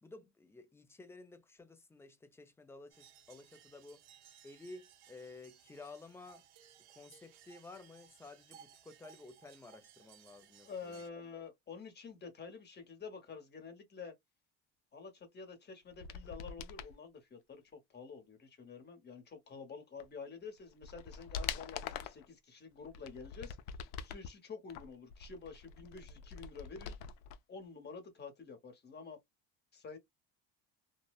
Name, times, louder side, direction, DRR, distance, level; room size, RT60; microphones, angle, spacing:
voice 1, 0.0-4.0 4.4-6.4 6.9-11.0, left 3 dB, 5° left, 0.3 m, -53 dB
sound 1, 2.9-11.1, right 9 dB, 70° right, 0.8 m, -61 dB
voice 2, 10.6-14.1 14.9-23.6 24.0-27.0 27.5-29.2 29.7-30.0, left 5 dB, 25° left, 1.0 m, -49 dB
sound 2, 15.9-16.9 20.0-20.1 20.6-22.3 22.8-24.3 24.7-27.4 27.6-27.7, left 7 dB, 75° left, 0.6 m, -44 dB
2.7 x 2.1 x 2.3 m
cardioid pair, 120°, 40 cm